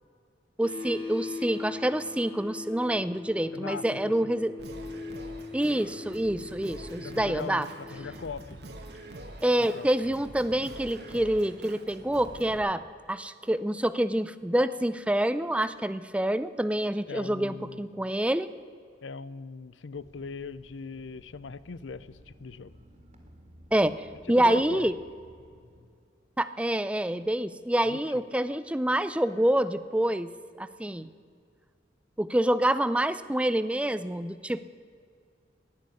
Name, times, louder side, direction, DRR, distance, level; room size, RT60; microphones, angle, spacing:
sound 1, 0.6-8.2, left 4 dB, 30° left, 2.7 m, -40 dB
voice 1, 0.6-4.5 5.5-7.7 9.4-12.8 13.1-18.5 23.7-24.0 24.3-24.9 26.4-30.3 30.6-31.1 32.2-34.6, right 1 dB, 5° right, 14 dB, 0.4 m, -27 dB
voice 2, 3.5-4.3 7.0-8.6 9.6-9.9 17.1-18.1 19.0-22.7 24.3-24.9 27.9-28.2, left 4 dB, 85° left, 17 dB, 0.5 m, -40 dB
Singing, 4.6-12.6, right 1 dB, 60° right, 1.5 m, -45 dB
sound 2, 19.9-25.8, equal, 40° right, 2.1 m, -55 dB
18.5 x 6.5 x 9.6 m, 2.2 s
head